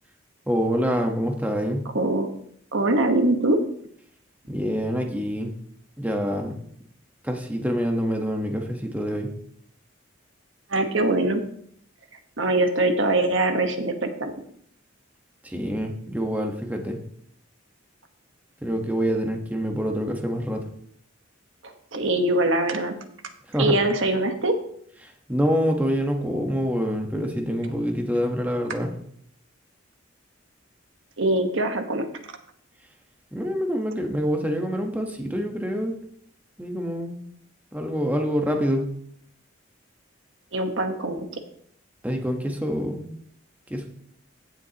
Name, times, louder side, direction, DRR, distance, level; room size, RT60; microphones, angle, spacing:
voice 1, 0.5-1.8 4.5-5.5 6.0-6.6 7.2-9.3 15.4-17.0 18.6-20.7 23.5-23.8 25.0-28.9 33.3-36.0 36.6-37.2 37.7-38.9 42.0-43.1 43.7-43.9, equal, 10° right, 2 dB, 1.1 m, -26 dB
voice 2, 1.9-2.3 2.7-3.6 10.7-11.4 12.4-14.3 21.6-23.0 23.6-24.5 31.2-32.1 40.5-41.3, right 2 dB, 70° right, 6 dB, 1.2 m, -23 dB
16.0 x 7.1 x 2.9 m, 0.65 s
head